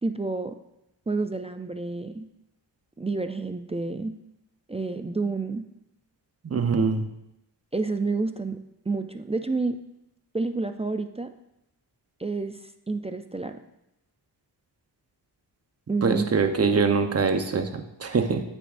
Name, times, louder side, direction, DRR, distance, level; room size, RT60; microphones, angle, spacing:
voice 1, 0.0-0.6 1.1-2.3 3.0-4.1 4.7-5.6 7.7-8.6 8.9-9.8 10.3-11.3 12.2-12.6 12.9-13.6 15.9-16.5, right 3 dB, 15° right, 7 dB, 0.4 m, -29 dB
voice 2, 6.4-7.1 16.0-18.4, right 5 dB, 35° right, 7 dB, 0.9 m, -23 dB
9.1 x 7.1 x 2.6 m, 0.84 s
cardioid pair, 85°, 43 cm